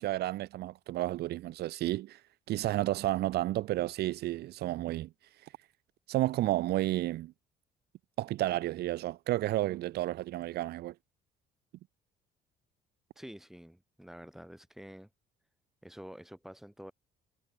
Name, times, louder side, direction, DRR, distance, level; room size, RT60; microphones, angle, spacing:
voice 1, 0.0-2.2 2.5-5.1 6.1-7.3 8.2-10.9, right 15 dB, 70° right, 1.2 m, -31 dB
voice 2, 13.2-15.1 15.8-16.9, equal, ahead, 2.6 m, -48 dB
cardioid pair, 110°, 17 cm